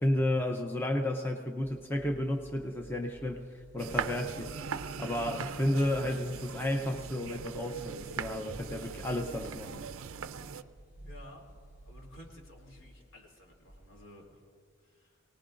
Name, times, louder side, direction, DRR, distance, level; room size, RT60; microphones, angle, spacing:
voice 1, 0.0-3.5 3.7-4.5 5.0-9.8, left 1 dB, 10° left, 2 dB, 0.6 m, -32 dB
sound 1, 1.6-14.2, right 1 dB, 50° left, 3.4 m, -53 dB
sound 2, 3.8-10.6, right 6 dB, 75° right, 0.5 m, -40 dB
voice 2, 11.0-11.4 11.8-14.4 14.8-15.2, left 1 dB, 65° left, -1 dB, 2.8 m, -53 dB
23.5 x 18.5 x 2.5 m, 2.1 s
head